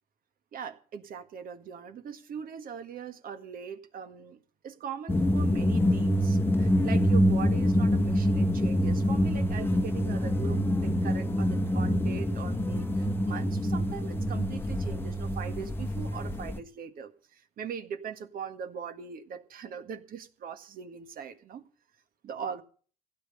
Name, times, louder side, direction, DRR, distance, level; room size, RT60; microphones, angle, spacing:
voice 1, 0.5-21.6 22.2-22.6, right 7 dB, 60° right, 1.7 m, -41 dB
sound 1, 5.1-16.6, equal, 15° left, 1.1 m, -26 dB
16.0 x 8.8 x 6.7 m
cardioid pair, 110°, 17 cm